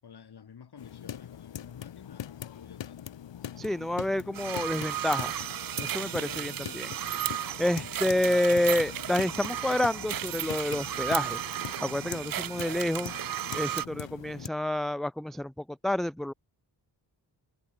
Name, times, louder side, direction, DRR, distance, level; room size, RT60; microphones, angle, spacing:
voice 1, 0.0-3.2 6.2-6.9, left 7 dB, 60° left, 6.7 m, -51 dB
sound 1, 0.8-14.5, left 10 dB, 90° left, 2.9 m, -42 dB
voice 2, 3.6-5.4 5.8-6.9 7.6-13.1 13.5-16.3, left 1 dB, ahead, 0.5 m, -29 dB
sound 2, 4.3-13.9, right 11 dB, 55° right, 0.6 m, -34 dB
wide cardioid pair, 120°, 43 cm